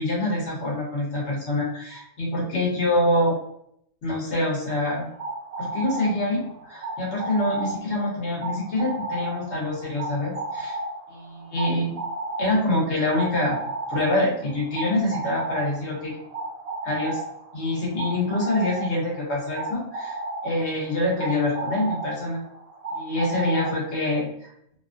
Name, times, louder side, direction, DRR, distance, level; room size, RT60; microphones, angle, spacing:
voice 1, 0.0-3.3 4.0-5.0 5.6-10.8 11.1-12.0 12.4-13.6 13.9-16.1 16.8-17.2 17.5-22.4 22.9-24.5, left 1 dB, 80° left, -4 dB, 1.3 m, -25 dB
sound 1, 4.8-24.2, right 2 dB, 70° right, 0.9 m, -34 dB
2.9 x 2.5 x 2.5 m, 0.73 s
omnidirectional pair, 1.1 m